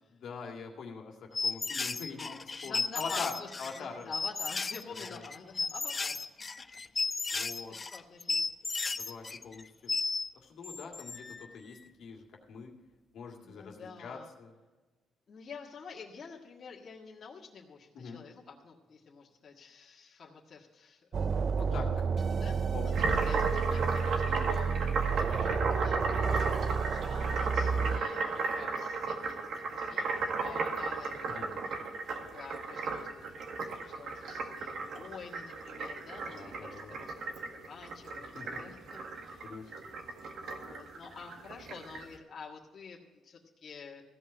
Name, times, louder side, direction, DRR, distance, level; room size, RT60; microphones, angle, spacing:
voice 1, 0.1-4.1 5.1-5.2 7.3-7.8 9.0-9.9 10.4-12.7 13.1-14.5 17.9-18.2 21.6-22.0 22.7-23.2 24.3-24.6 27.7-28.1 31.3-31.6 36.3-37.0 38.1-38.6 39.4-39.7, left 5 dB, 70° left, 0 dB, 2.0 m, -44 dB
sound 1, 1.3-10.3 10.6-11.5, left 4 dB, 30° left, 0.5 m, -34 dB
voice 2, 2.6-3.5 3.8-6.2 7.9-8.5 13.4-14.3 15.3-21.2 21.7-31.5 32.1-37.4 37.7-38.8 39.1-39.5 40.5-44.0, left 5 dB, 50° left, -2 dB, 1.7 m, -49 dB
sound 2, 21.1-28.0, right 6 dB, 45° right, 0.5 m, -31 dB
sound 3, 22.9-42.0, right 4 dB, 65° right, 1.7 m, -35 dB
15.5 x 5.5 x 8.7 m, 1.2 s
cardioid pair, 90°, 0 cm